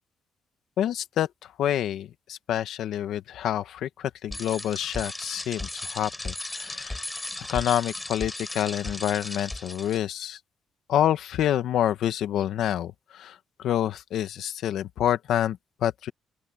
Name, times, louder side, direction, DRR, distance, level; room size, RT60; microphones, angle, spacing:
voice 1, 0.8-1.3 1.6-7.0 7.5-10.4 10.9-16.1, left 11 dB, 75° left, 1.4 m, -27 dB
Bicycle, 4.3-10.0, left 2 dB, 15° left, 4.4 m, -36 dB
open air
cardioid pair, 90°, 0 cm